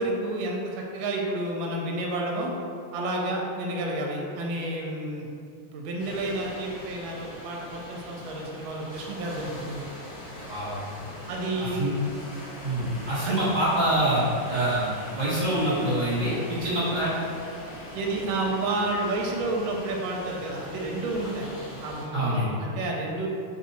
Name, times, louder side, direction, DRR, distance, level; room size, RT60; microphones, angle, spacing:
voice 1, 0.0-2.5 2.9-5.3 5.6-9.8 11.3-11.9 13.2-13.4 17.9-21.5 21.8-23.4, right 2 dB, 75° right, -1 dB, 1.4 m, -30 dB
sound 1, 6.0-22.0, left 1 dB, 45° left, 1.8 m, -41 dB
voice 2, 12.6-14.8 15.1-17.1 22.1-22.5, right 1 dB, 40° right, -11 dB, 1.6 m, -25 dB
3.7 x 2.7 x 4.1 m, 2.5 s
omnidirectional pair, 2.2 m